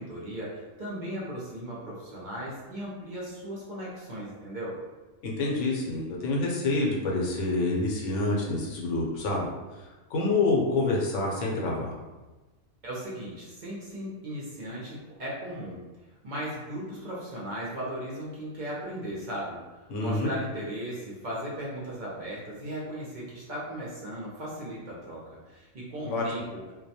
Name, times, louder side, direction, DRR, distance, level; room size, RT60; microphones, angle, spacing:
voice 1, 0.0-4.8 12.8-15.8 16.2-19.6 20.0-26.6, equal, 55° right, -6 dB, 0.5 m, -37 dB
voice 2, 5.2-9.5 10.1-11.9 19.9-20.3 26.0-26.2, left 2 dB, 75° left, -2 dB, 0.9 m, -27 dB
2.2 x 2.1 x 2.7 m, 1.2 s
omnidirectional pair, 1.3 m